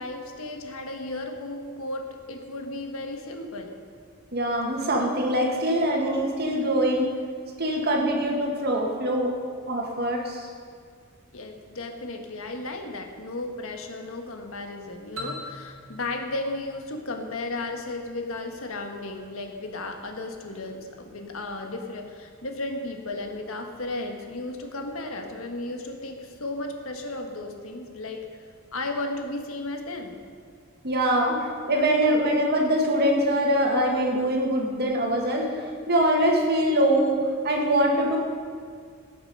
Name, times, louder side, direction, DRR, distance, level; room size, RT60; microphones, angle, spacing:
voice 1, 0.0-3.7 11.3-28.3 28.7-30.2 31.2-31.4, left 2 dB, 90° left, 3 dB, 1.4 m, -34 dB
voice 2, 4.3-7.1 7.6-9.3 9.7-10.5 30.8-31.4 31.7-35.5 35.9-38.2, right 1 dB, 50° right, 1 dB, 1.9 m, -23 dB
sound 1, 15.2-17.9, equal, 85° right, 2.3 m, -41 dB
17.5 x 6.9 x 5.4 m, 2.1 s
head